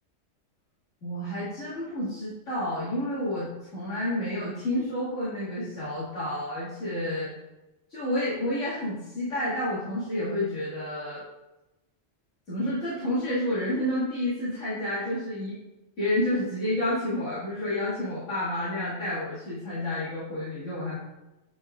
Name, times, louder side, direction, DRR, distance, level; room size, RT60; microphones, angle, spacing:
voice 1, 1.0-7.3 7.9-11.2 12.5-15.6 16.0-21.0, left 1 dB, 85° left, -14 dB, 2.5 m, -30 dB
9.1 x 4.3 x 2.4 m, 1.0 s
omnidirectional pair, 1.3 m